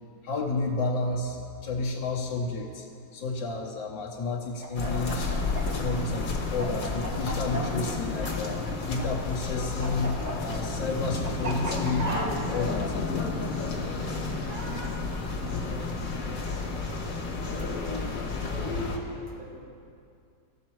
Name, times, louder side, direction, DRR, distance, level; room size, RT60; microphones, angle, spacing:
voice 1, 0.2-2.9 3.1-5.4 5.6-13.0, left 3 dB, 75° left, -2 dB, 1.6 m, -31 dB
Chicken rooster, 4.6-9.0 9.3-14.9, right 1 dB, 25° right, 1.0 m, -36 dB
sound 1, 4.8-19.0, left 3 dB, 50° left, 1.5 m, -31 dB
voice 2, 17.4-18.1 18.5-19.6, left 1 dB, 75° right, -5 dB, 2.7 m, -37 dB
17.0 x 6.8 x 4.5 m, 2.5 s
omnidirectional pair, 2.0 m